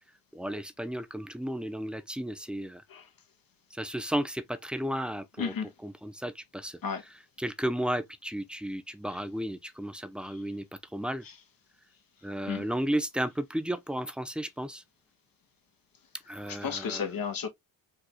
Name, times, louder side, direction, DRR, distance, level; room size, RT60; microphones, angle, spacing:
voice 1, 0.3-2.8 3.7-5.5 5.8-6.8 7.4-10.6 10.9-11.2 12.2-14.8 16.3-17.0, right 1 dB, ahead, 0.6 m, -33 dB
voice 2, 5.4-5.7 6.8-7.0 9.1-9.2 10.2-10.4 11.2-11.4 12.5-12.6 16.5-17.5, left 6 dB, 50° left, 1.4 m, -34 dB
4.9 x 2.7 x 2.2 m
supercardioid pair, 60°, 44 cm